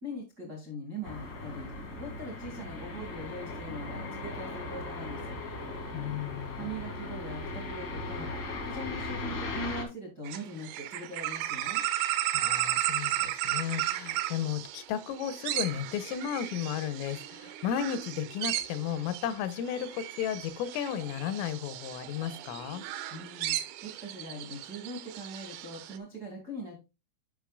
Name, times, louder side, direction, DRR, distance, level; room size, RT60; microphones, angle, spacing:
voice 1, 0.0-1.7 2.0-5.3 6.6-8.3 8.6-11.8 23.1-23.5 23.8-26.7, equal, 65° right, 0.9 m, -41 dB
sound 1, 1.0-9.8, left 2 dB, 70° left, 1.1 m, -38 dB
voice 2, 5.9-6.7 12.3-22.8, left 9 dB, 85° left, 3.4 m, -34 dB
sound 2, 10.3-26.0, right 14 dB, 80° right, 2.9 m, -35 dB
11.5 x 5.8 x 2.4 m
omnidirectional pair, 5.8 m